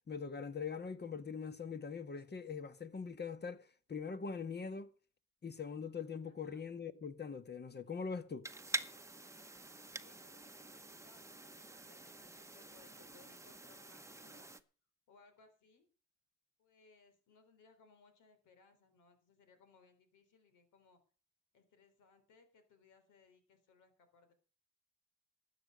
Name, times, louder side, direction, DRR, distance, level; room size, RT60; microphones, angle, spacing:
voice 1, 0.1-3.6 3.9-4.9 5.4-8.5, left 5 dB, 35° left, 1.6 m, -42 dB
voice 2, 6.2-6.7 9.9-14.5 15.1-15.9 16.6-21.0 21.5-24.3, left 4 dB, 80° left, 3.8 m, -66 dB
sound 1, 8.4-14.6, right 2 dB, 10° right, 1.0 m, -46 dB
13.0 x 8.9 x 6.4 m
cardioid pair, 90°, 30 cm